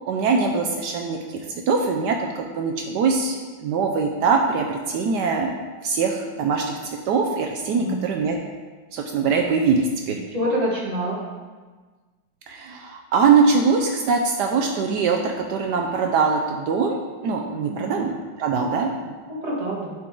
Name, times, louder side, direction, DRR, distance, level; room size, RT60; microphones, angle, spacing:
voice 1, 0.1-1.2 1.7-3.4 3.6-5.5 5.8-6.8 7.1-8.4 8.9-10.2 12.5-19.1, right 5 dB, 70° right, 2 dB, 1.1 m, -22 dB
voice 2, 10.3-11.2 17.7-18.0 19.3-19.9, equal, 20° right, -5 dB, 1.5 m, -26 dB
10.5 x 4.5 x 3.7 m, 1.4 s
omnidirectional pair, 2.0 m